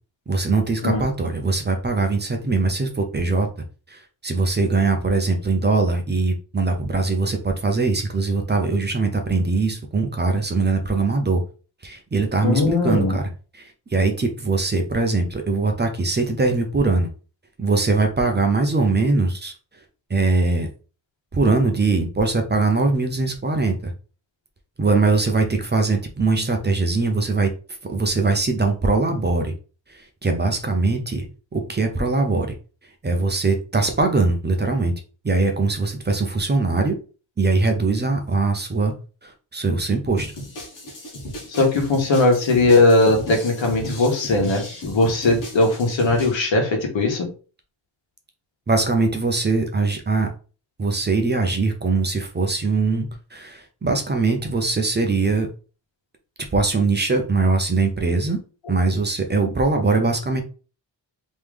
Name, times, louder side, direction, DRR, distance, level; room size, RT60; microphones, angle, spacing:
voice 1, 0.3-3.5 3.9-11.4 11.8-13.3 13.5-17.1 17.6-19.5 20.1-20.7 21.3-23.9 24.8-27.5 27.9-29.5 29.9-31.3 31.5-32.5 33.0-34.9 35.2-37.0 37.4-38.9 39.2-40.3 48.7-50.3 50.8-55.5 56.5-58.4 58.7-60.4, right 3 dB, 25° right, 4 dB, 0.5 m, -21 dB
voice 2, 12.4-13.2 41.5-47.3, left 2 dB, 90° left, 2 dB, 1.4 m, -19 dB
sound 1, 40.2-46.4, equal, 45° left, 1.3 m, -35 dB
3.6 x 3.1 x 3.3 m, 0.36 s
wide cardioid pair, 170°, 44 cm